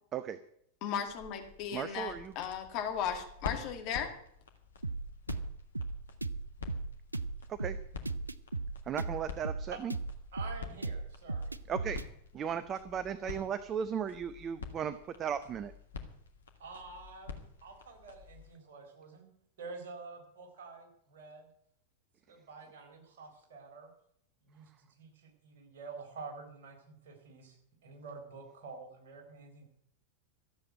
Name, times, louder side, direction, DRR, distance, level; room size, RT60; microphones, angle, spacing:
voice 1, 0.8-4.1, left 8 dB, 40° left, 5 dB, 2.2 m, -36 dB
sound 1, 1.0-18.5, left 5 dB, 70° left, 1.8 m, -48 dB
voice 2, 1.7-2.3 7.5-7.8 8.9-9.9 11.7-12.0 12.3-15.7, right 8 dB, 30° right, 13 dB, 0.7 m, -36 dB
sound 2, 4.8-12.1, right 3 dB, 85° right, 0.5 m, -37 dB
voice 3, 10.3-11.6 16.6-19.3 19.6-21.5 22.3-23.9 24.4-27.6 27.8-29.7, right 4 dB, 55° right, 2 dB, 4.2 m, -48 dB
13.5 x 7.9 x 9.1 m, 0.69 s
figure-of-eight pair, 90°, 0 cm